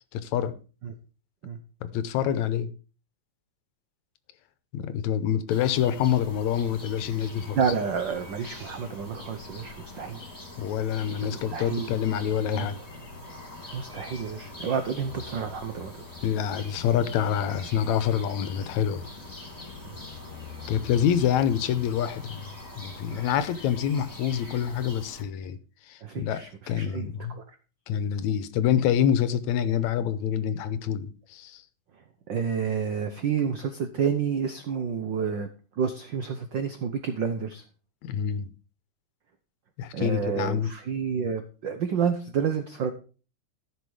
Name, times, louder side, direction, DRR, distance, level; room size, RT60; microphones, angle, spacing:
voice 1, 0.1-0.5 1.8-2.7 4.7-7.6 10.6-12.8 16.2-19.1 20.7-25.6 25.9-26.4 26.7-27.4 27.9-31.6 38.0-38.5 39.8-40.7, left 9 dB, 80° left, 2.1 m, -26 dB
sound 1, 5.5-25.2, left 2 dB, 15° left, 2.8 m, -43 dB
voice 2, 7.6-10.2 11.2-11.9 12.5-12.7 13.7-15.9 19.8-20.0 23.1-23.2 26.0-27.4 32.3-35.5 35.7-37.6 39.9-42.9, right 7 dB, 85° right, 1.0 m, -29 dB
14.0 x 5.9 x 4.9 m
omnidirectional pair, 3.3 m